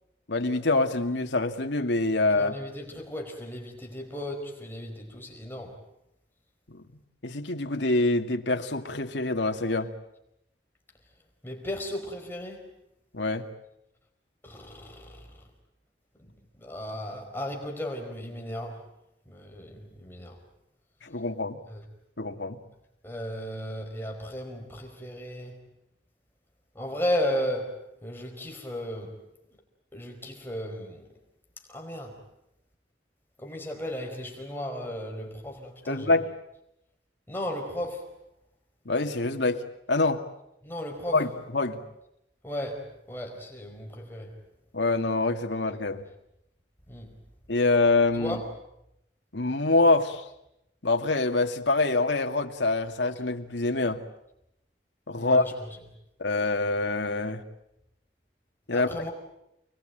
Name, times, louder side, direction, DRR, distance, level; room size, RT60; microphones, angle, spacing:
voice 1, 0.3-2.6 7.2-9.9 13.1-13.5 21.0-21.6 22.2-22.6 35.9-36.3 38.9-39.6 39.9-40.2 41.1-41.8 44.7-46.0 47.5-48.4 49.3-50.2 50.8-54.0 55.1-55.4 56.2-57.4 58.7-58.9, left 2 dB, 85° left, 2.2 m, -25 dB
voice 2, 2.3-5.8 11.4-12.6 14.4-15.3 16.2-16.3 16.6-18.8 19.3-20.4 21.7-21.8 23.0-25.6 26.7-29.1 29.9-31.1 31.7-32.2 33.4-36.2 37.3-38.0 40.6-41.2 42.4-44.3 46.9-47.1 48.2-48.5 55.1-55.8 58.7-59.1, equal, 10° left, 4.8 m, -35 dB
29.0 x 21.5 x 9.2 m
head